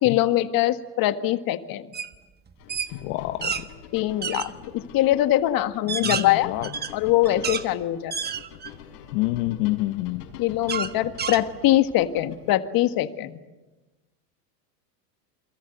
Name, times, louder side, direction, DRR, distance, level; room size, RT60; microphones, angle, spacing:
voice 1, 0.0-1.8 3.9-6.5 6.9-8.1 10.4-13.4, left 14 dB, 45° left, 10 dB, 1.7 m, -23 dB
sound 1, 1.9-2.1 2.5-3.6 4.2-4.5 5.1-5.2 5.7-7.7 8.1-8.8 9.3-9.4 10.7-11.9, right 6 dB, 20° right, 1.3 m, -30 dB
sound 2, 2.6-12.6, left 8 dB, 80° left, 5.8 m, -45 dB
voice 2, 2.9-3.7 5.9-6.7 9.1-10.3, left 18 dB, 65° left, 9 dB, 1.2 m, -28 dB
29.5 x 22.5 x 8.1 m, 1.2 s
supercardioid pair, 120°, 47 cm